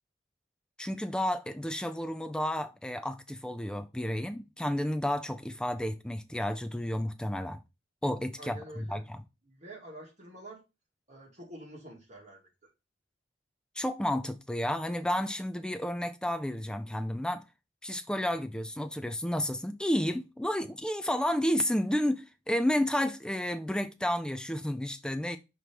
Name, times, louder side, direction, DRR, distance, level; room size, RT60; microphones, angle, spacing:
voice 1, 0.8-7.6 8.0-9.2 13.8-17.4 17.8-25.4, left 1 dB, 5° left, 0.4 m, -31 dB
voice 2, 8.4-9.0 9.4-10.6 11.1-12.7, right 1 dB, 40° right, 2.3 m, -47 dB
6.1 x 3.1 x 5.0 m
head